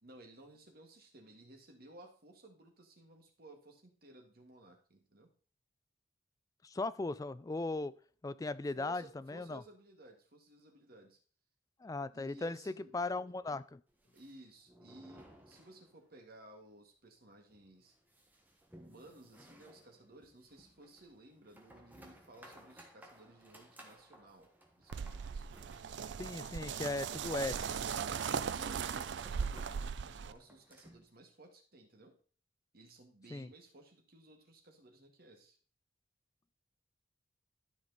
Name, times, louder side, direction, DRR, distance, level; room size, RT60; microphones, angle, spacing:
voice 1, 0.0-5.3 8.8-11.2 12.1-12.9 14.1-17.9 18.7-25.5 28.4-32.2 32.7-35.6, right 2 dB, 55° right, 3 dB, 1.8 m, -57 dB
voice 2, 6.6-7.9 8.2-9.6 11.8-13.8 26.2-27.6 33.3-33.5, left 2 dB, 20° left, 14 dB, 0.3 m, -38 dB
sound 1, 13.9-16.3 16.5-16.6 17.0-17.1 17.5-31.1, equal, 10° right, 1.3 m, -60 dB
sound 2, 24.9-30.3, right 6 dB, 70° right, 0.4 m, -38 dB
12.5 x 5.0 x 4.0 m, 0.43 s
head